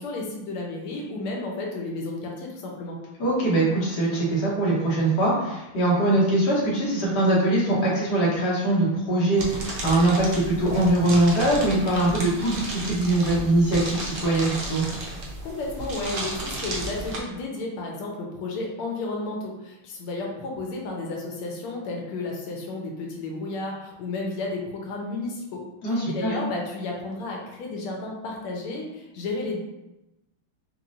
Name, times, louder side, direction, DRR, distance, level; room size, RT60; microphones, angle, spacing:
voice 1, 0.0-3.0 15.4-25.6 25.9-29.6, left 2 dB, 85° left, -1 dB, 1.7 m, -32 dB
voice 2, 3.2-14.8 25.8-26.3, right 1 dB, 55° left, -6 dB, 1.7 m, -22 dB
sound 1, 9.4-17.2, right 1 dB, 90° right, 0.6 m, -33 dB
4.1 x 3.1 x 2.5 m, 0.96 s
omnidirectional pair, 2.3 m